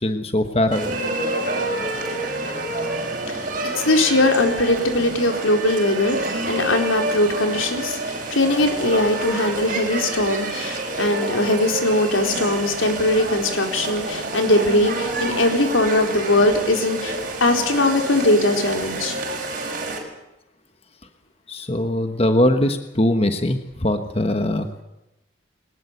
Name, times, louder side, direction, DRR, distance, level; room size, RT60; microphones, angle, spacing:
voice 1, 0.0-1.0 21.5-24.8, left 1 dB, 30° left, 7 dB, 1.3 m, -21 dB
sound 1, 0.7-20.0, right 2 dB, 45° right, 6.0 m, -28 dB
voice 2, 3.6-19.2, left 1 dB, 85° left, 4 dB, 4.2 m, -20 dB
22.0 x 20.0 x 8.3 m, 0.95 s
head